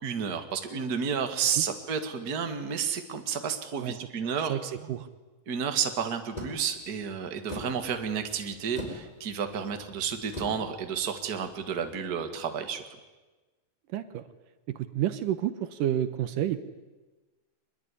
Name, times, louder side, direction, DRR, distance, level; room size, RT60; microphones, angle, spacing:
voice 1, 0.0-4.6 5.5-12.9, right 7 dB, 35° right, 7 dB, 2.0 m, -31 dB
voice 2, 4.5-5.1 13.9-14.2 14.7-16.6, right 11 dB, 75° right, 11 dB, 2.6 m, -30 dB
sound 1, 6.3-11.9, left 1 dB, 10° left, 4.6 m, -43 dB
24.0 x 21.0 x 10.0 m, 1.2 s
omnidirectional pair, 4.0 m